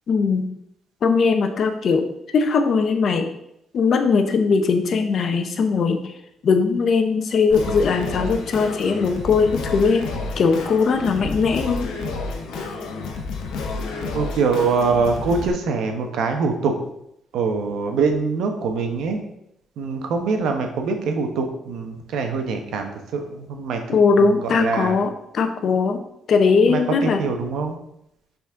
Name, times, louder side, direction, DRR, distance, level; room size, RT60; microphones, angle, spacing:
voice 1, 0.1-0.5 1.0-2.1 2.3-3.3 3.7-6.0 6.4-10.0 10.4-11.9 23.9-26.0 26.3-27.2, left 5 dB, 55° left, 7 dB, 0.9 m, -19 dB
Singing, 7.5-15.5, left 3 dB, 85° left, 1.1 m, -30 dB
voice 2, 14.1-16.7 17.3-19.2 19.8-23.8 24.2-25.0 26.7-27.8, right 4 dB, 80° right, 5 dB, 1.2 m, -24 dB
6.1 x 4.3 x 5.8 m, 0.79 s
cardioid pair, 90°, 0 cm